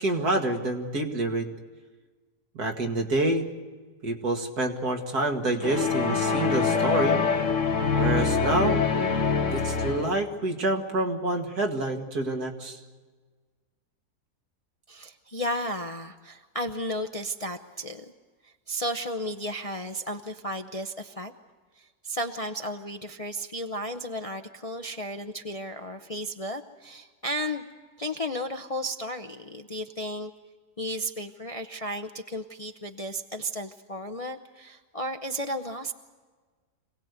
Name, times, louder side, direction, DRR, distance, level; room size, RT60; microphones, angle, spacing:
voice 1, 0.0-1.5 2.5-3.5 4.0-7.2 8.0-8.9 9.5-12.8, right 2 dB, 70° right, 3 dB, 2.5 m, -27 dB
sound 1, 5.6-10.2, left 5 dB, 50° left, 1.6 m, -25 dB
voice 2, 14.9-18.1 18.4-21.3 21.8-27.6 28.0-30.3 30.8-35.9, equal, 35° left, 5 dB, 0.6 m, -34 dB
26.0 x 18.5 x 8.1 m, 1.4 s
omnidirectional pair, 1.7 m